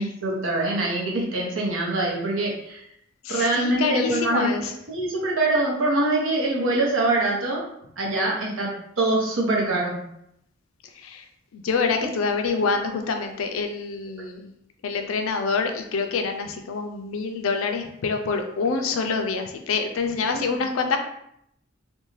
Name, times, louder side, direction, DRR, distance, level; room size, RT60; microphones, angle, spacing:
voice 1, 0.0-2.8 3.3-7.6 8.0-8.7 9.0-10.0 20.3-20.6, right 2 dB, 85° right, -2 dB, 0.8 m, -24 dB
voice 2, 3.2-4.7 10.9-11.2 11.5-14.5 14.8-21.0, left 4 dB, 90° left, 5 dB, 0.4 m, -26 dB
2.6 x 2.2 x 3.1 m, 0.75 s
head